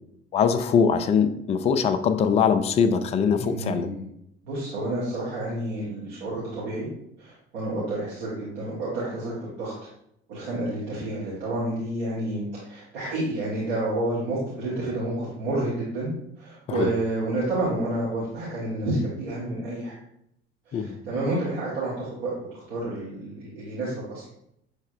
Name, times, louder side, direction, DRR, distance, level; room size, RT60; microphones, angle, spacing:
voice 1, 0.3-3.9 16.8-16.9 20.7-21.0, left 6 dB, 20° left, 9 dB, 0.3 m, -22 dB
voice 2, 3.3-4.0 4.4-6.9 7.2-9.7 10.3-16.1 16.4-19.9 20.7-24.2, right 1 dB, 65° right, -9 dB, 1.5 m, -29 dB
6.4 x 3.3 x 2.5 m, 0.77 s
figure-of-eight pair, 55°, 31 cm